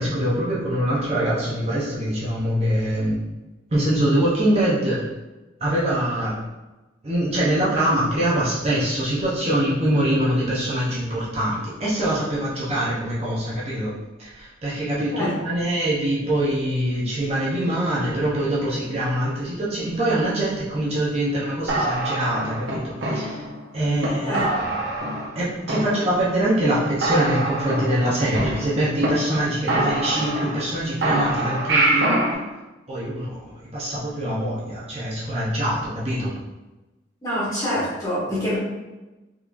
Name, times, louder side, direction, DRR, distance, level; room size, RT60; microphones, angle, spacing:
voice 1, 0.0-3.2 3.7-5.0 5.6-6.3 7.0-13.9 14.2-23.4 23.7-24.8 25.3-32.2 32.9-36.4, right 1 dB, 35° right, -7 dB, 0.7 m, -24 dB
sound 1, 21.7-23.6 24.0-24.1 24.3-25.4 25.7-26.4 26.7-26.8 27.0-29.1 29.3-29.4 29.7-30.7 31.0-32.3, right 2 dB, 75° right, 0.7 m, -24 dB
voice 2, 37.2-38.6, left 1 dB, 20° left, -9 dB, 1.5 m, -26 dB
3.6 x 3.0 x 2.5 m, 1.1 s
head